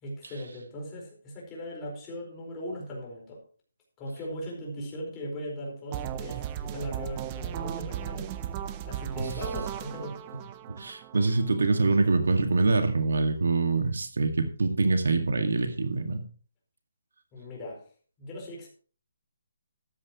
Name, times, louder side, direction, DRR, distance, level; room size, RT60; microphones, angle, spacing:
voice 1, 0.0-3.4 4.0-8.6 8.8-10.4 17.3-17.8 18.2-18.7, equal, 15° left, -3 dB, 4.7 m, -39 dB
sound 1, 5.9-11.9, right 11 dB, 20° right, 0.6 m, -36 dB
voice 2, 10.7-16.2, right 3 dB, 80° right, 6 dB, 2.0 m, -25 dB
13.5 x 12.0 x 3.1 m, 0.41 s
hypercardioid pair, 170°, 0 cm